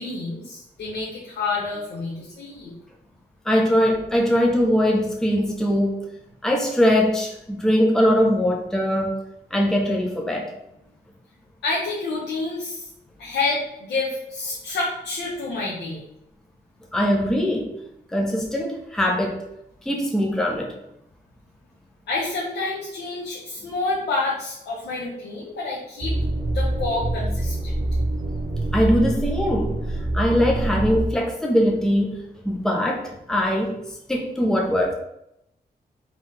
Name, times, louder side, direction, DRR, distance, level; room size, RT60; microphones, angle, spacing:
voice 1, 0.0-2.7 11.6-12.9 13.2-16.0 22.1-26.2 26.5-27.7, left 3 dB, 90° left, -5 dB, 0.8 m, -28 dB
voice 2, 3.4-6.0 6.4-9.1 9.5-10.5 16.9-17.7 18.1-19.4 19.8-20.7 28.7-29.8 30.1-32.2 32.4-33.8 34.1-34.9, equal, 5° left, 0 dB, 0.7 m, -21 dB
sound 1, 26.0-31.1, right 1 dB, 50° right, 0.7 m, -25 dB
3.7 x 2.9 x 3.2 m, 0.81 s
cardioid pair, 60°, 17 cm